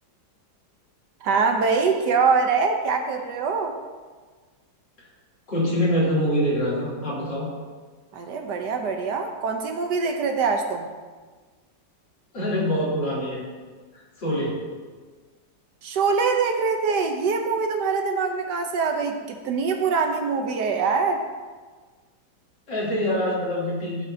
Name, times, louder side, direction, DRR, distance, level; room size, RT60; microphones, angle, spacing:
voice 1, 1.2-3.7 8.1-10.9 15.8-21.2, right 5 dB, 70° right, 4 dB, 1.4 m, -24 dB
voice 2, 5.5-7.5 12.3-13.5 13.9-14.6 22.7-24.1, equal, 70° left, -7 dB, 3.8 m, -25 dB
15.5 x 7.7 x 2.8 m, 1.4 s
omnidirectional pair, 2.0 m